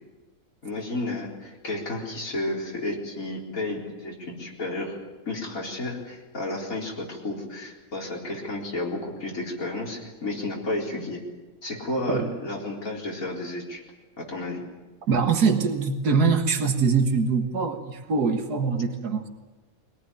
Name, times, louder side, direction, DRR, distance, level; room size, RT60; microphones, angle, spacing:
voice 1, 0.6-5.0 5.3-11.2 11.6-13.8 14.2-14.6, left 2 dB, 60° left, -2 dB, 4.6 m, -32 dB
voice 2, 15.1-19.3, right 5 dB, 90° right, 5 dB, 2.1 m, -23 dB
23.5 x 18.0 x 10.0 m, 1.2 s
omnidirectional pair, 1.6 m